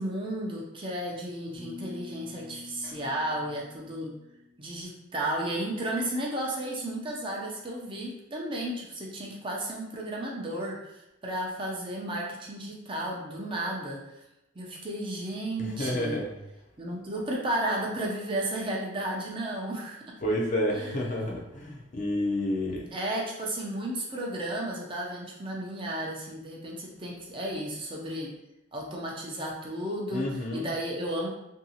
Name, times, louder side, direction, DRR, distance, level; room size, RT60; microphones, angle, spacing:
voice 1, 0.0-4.1 4.6-14.0 14.6-16.2 16.8-20.0 20.7-20.9 22.9-28.3 28.7-30.3 30.5-31.3, right 1 dB, 25° right, -2 dB, 0.5 m, -33 dB
sound 1, 1.5-4.7, left 3 dB, 40° right, 0.9 m, -47 dB
voice 2, 15.6-16.3 20.2-22.9 30.1-30.7, left 1 dB, 40° left, -1 dB, 0.4 m, -30 dB
2.8 x 2.6 x 2.7 m, 0.90 s
head